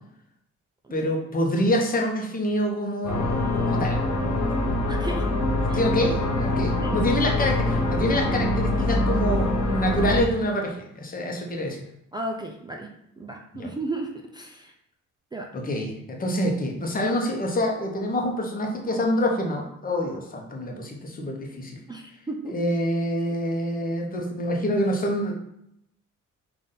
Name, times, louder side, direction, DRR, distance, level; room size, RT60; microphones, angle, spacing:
voice 1, 0.9-4.4 5.7-11.8 13.5-13.7 15.5-21.8 22.5-25.3, equal, 30° left, 1 dB, 0.8 m, -26 dB
sound 1, 3.0-10.2, left 1 dB, 65° left, 1.3 m, -24 dB
voice 2, 4.9-5.3 5.7-5.8 6.7-7.4 12.1-12.9 13.2-14.7 15.3-15.5 21.9-22.6, right 2 dB, 15° right, 1 dB, 0.4 m, -34 dB
3.9 x 2.6 x 3.7 m, 0.78 s
cardioid pair, 90°, 30 cm